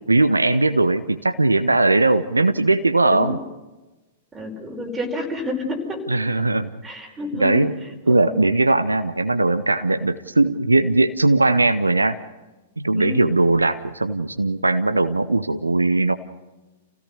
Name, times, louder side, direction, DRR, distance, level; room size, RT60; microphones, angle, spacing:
voice 1, 0.1-3.4 6.1-6.7 7.4-7.7 8.1-12.2 12.8-16.1, right 2 dB, 80° right, 11 dB, 0.8 m, -19 dB
voice 2, 4.3-6.1 6.8-7.6 8.1-8.4 13.0-13.3, left 1 dB, 10° right, 1 dB, 5.1 m, -30 dB
28.5 x 16.5 x 6.8 m, 1.1 s
figure-of-eight pair, 100°, 0 cm